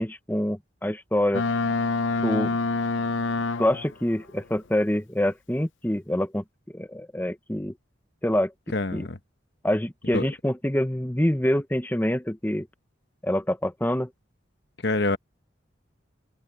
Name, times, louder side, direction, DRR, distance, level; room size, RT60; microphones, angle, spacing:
voice 1, 0.0-1.4 2.2-2.6 3.6-6.4 6.7-7.7 8.2-8.5 8.9-9.1 9.6-12.7 13.2-14.1, left 1 dB, 10° left, 0.9 m, -26 dB
Boat Water vehicle, 1.3-4.0, left 3 dB, 85° left, 0.8 m, -26 dB
voice 2, 8.7-9.2 10.1-10.3 14.8-15.2, left 2 dB, 60° left, 1.1 m, -25 dB
head